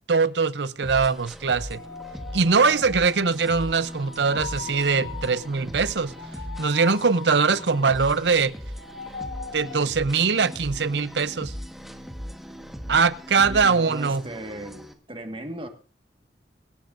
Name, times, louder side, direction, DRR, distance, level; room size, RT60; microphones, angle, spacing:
voice 1, 0.1-1.8 2.3-6.1 6.6-8.5 9.5-11.5 12.9-14.2, right 5 dB, 80° right, 0.7 m, -22 dB
sound 1, 0.8-14.9, equal, ahead, 1.4 m, -39 dB
sound 2, 1.6-8.4 8.6-9.8, left 5 dB, 90° left, 1.0 m, -40 dB
voice 2, 13.3-15.7, right 1 dB, 30° right, 1.7 m, -37 dB
24.0 x 11.5 x 2.6 m
head